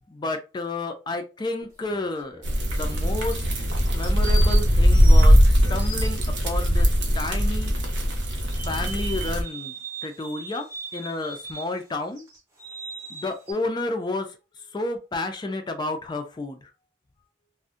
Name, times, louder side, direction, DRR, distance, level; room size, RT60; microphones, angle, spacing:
voice 1, 0.1-2.4 2.6-3.4 3.9-5.3 5.7-6.9 7.1-7.8 8.7-9.7 10.0-10.7 10.9-12.3 13.1-14.3 14.7-16.6, left 2 dB, 25° left, 6 dB, 0.3 m, -30 dB
sound 1, 1.6-2.6 4.0-6.5 8.5-11.8 12.2-13.5, right 3 dB, 15° right, 0.7 m, -39 dB
sound 2, 2.4-9.4, equal, 75° right, 0.7 m, -20 dB
2.5 x 2.1 x 2.4 m, 0.29 s
head